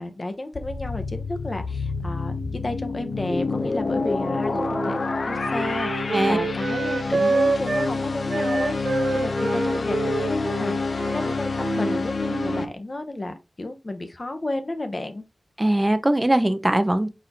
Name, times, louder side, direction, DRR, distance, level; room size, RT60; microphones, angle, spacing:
voice 1, 0.0-2.4 2.6-5.0 5.3-15.2, left 2 dB, 45° left, 0.8 m, -32 dB
sound 1, 0.5-12.7, left 3 dB, 75° left, 0.4 m, -27 dB
Wind instrument woodwind instrument, 3.9-7.9 8.3-12.7, right 3 dB, 85° right, 0.7 m, -28 dB
voice 2, 15.6-17.1, right 1 dB, 20° right, 0.5 m, -21 dB
4.1 x 3.9 x 2.7 m
wide cardioid pair, 55°, 0 cm